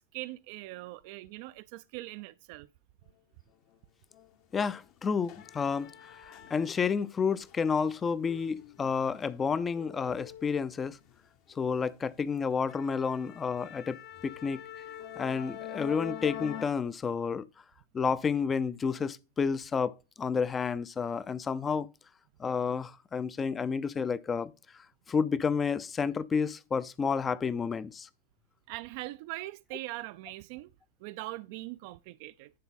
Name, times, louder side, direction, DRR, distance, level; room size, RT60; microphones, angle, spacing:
voice 1, 0.1-2.7 28.7-30.7 31.0-32.5, right 19 dB, 45° right, 0.3 m, -41 dB
sound 1, 4.1-4.3 4.7-7.0 7.4-11.2 11.6-11.8 12.2-12.3 12.7-16.7, left 10 dB, 40° left, 0.8 m, -45 dB
voice 2, 4.5-11.0 11.6-14.0 14.2-14.6 15.2-17.5 17.9-21.9 22.4-24.5 25.1-28.1, left 5 dB, 20° left, 0.4 m, -30 dB
10.0 x 3.9 x 4.0 m
figure-of-eight pair, 90°, 0 cm